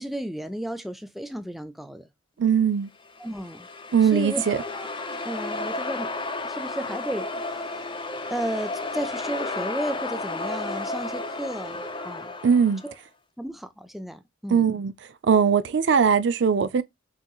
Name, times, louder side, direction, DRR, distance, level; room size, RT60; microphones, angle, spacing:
voice 1, 0.0-2.1 3.2-3.7 4.0-4.4 4.7-4.9 5.2-6.1 6.4-7.8 8.3-12.4 12.8-12.9 13.4-14.7, right 1 dB, ahead, 0.4 m, -33 dB
voice 2, 2.4-2.9 3.9-4.6 12.4-12.8 14.5-14.9 15.2-16.8, right 6 dB, 60° right, 0.4 m, -20 dB
sound 1, 3.1-12.9, left 2 dB, 25° left, 0.8 m, -33 dB
6.1 x 3.0 x 2.3 m
head